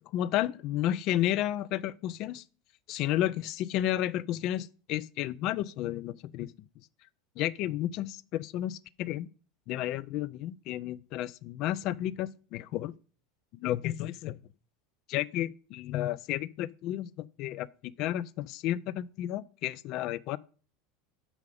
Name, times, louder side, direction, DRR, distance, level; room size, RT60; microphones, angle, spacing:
voice 1, 0.1-2.4 2.9-6.5 7.4-9.3 9.7-12.9 13.5-14.4 15.1-20.4, left 13 dB, 45° left, 0.4 m, -32 dB
5.8 x 5.7 x 6.7 m
figure-of-eight pair, 75°, 0 cm